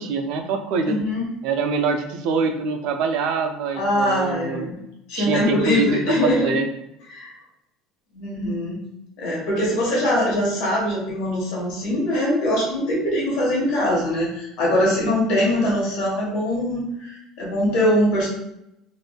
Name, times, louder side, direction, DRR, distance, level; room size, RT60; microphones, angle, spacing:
voice 1, 0.0-1.0 1.4-4.7 5.2-6.7, right 4 dB, 70° right, 6 dB, 0.4 m, -24 dB
voice 2, 0.9-1.3 3.7-4.7 5.1-6.5 7.1-7.3 8.1-8.8 9.2-18.3, left 1 dB, 70° left, -4 dB, 1.3 m, -22 dB
3.0 x 2.5 x 2.3 m, 0.83 s
supercardioid pair, 105°, 0 cm